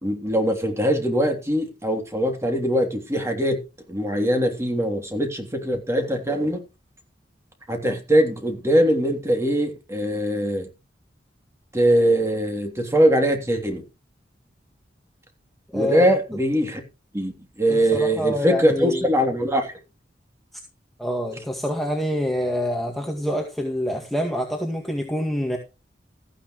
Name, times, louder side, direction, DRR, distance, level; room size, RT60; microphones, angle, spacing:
voice 1, 0.0-3.6 3.9-6.6 7.7-10.7 11.7-13.8 15.7-16.8 17.1-19.7, equal, 15° right, 3.2 m, -22 dB
voice 2, 15.7-16.1 17.7-19.1 21.0-25.6, left 1 dB, ahead, 1.9 m, -26 dB
14.5 x 10.5 x 3.2 m
head